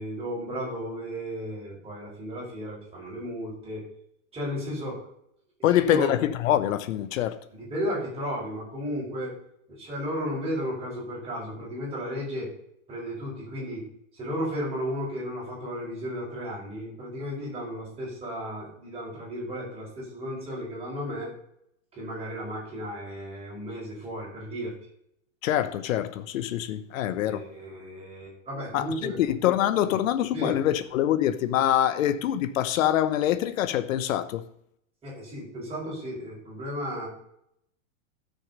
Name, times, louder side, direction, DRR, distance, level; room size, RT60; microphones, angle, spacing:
voice 1, 0.0-3.8 4.3-5.1 5.6-6.1 7.5-9.4 9.7-12.5 12.9-13.8 14.1-21.3 21.9-24.7 27.2-29.2 29.8-29.9 30.3-30.6 35.0-37.1, equal, 15° right, 5.1 m, -34 dB
voice 2, 5.6-7.4 25.4-27.5 28.7-34.4, left 11 dB, 75° left, 1.0 m, -25 dB
13.5 x 6.6 x 5.4 m
supercardioid pair, 155°, 40 cm